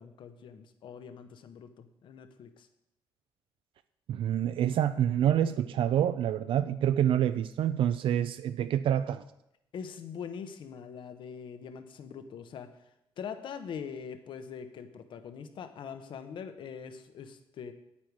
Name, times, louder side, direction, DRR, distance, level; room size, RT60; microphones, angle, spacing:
voice 1, 0.0-2.7 9.7-12.7 13.2-17.7, left 7 dB, 60° left, 9 dB, 0.9 m, -43 dB
voice 2, 4.1-9.2, right 10 dB, 65° right, 12 dB, 0.4 m, -27 dB
9.4 x 8.6 x 4.7 m, 0.83 s
cardioid pair, 155°, 10 cm